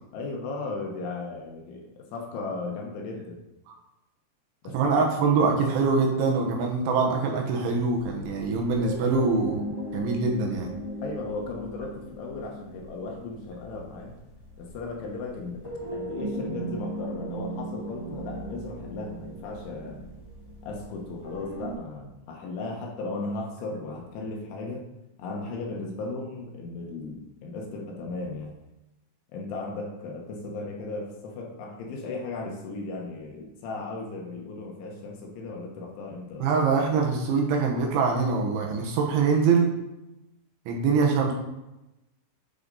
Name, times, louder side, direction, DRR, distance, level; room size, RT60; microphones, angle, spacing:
voice 1, 0.1-3.4 4.6-4.9 11.0-14.1 14.6-15.6 15.9-20.0 20.7-24.9 25.2-28.5 29.3-36.5, left 3 dB, 75° left, 0 dB, 3.5 m, -36 dB
voice 2, 4.7-9.6 9.9-10.7 36.4-39.7 40.7-41.3, right 4 dB, 75° right, 1 dB, 3.3 m, -24 dB
sound 1, 7.9-21.7, right 1 dB, 10° left, 2.0 m, -38 dB
10.5 x 6.0 x 4.0 m, 0.95 s
omnidirectional pair, 6.0 m